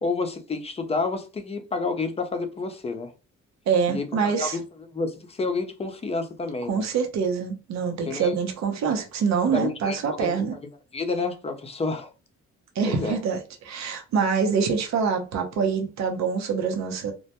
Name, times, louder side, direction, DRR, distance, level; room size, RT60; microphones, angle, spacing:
voice 1, 0.0-3.1 3.9-4.6 4.9-6.8 8.1-8.3 9.5-10.5 10.9-12.1 12.9-13.2, left 3 dB, 20° left, 0.5 m, -29 dB
voice 2, 3.7-4.6 6.7-10.6 12.8-17.1, right 6 dB, 65° right, 0.7 m, -25 dB
2.1 x 2.1 x 2.8 m
cardioid pair, 90°, 30 cm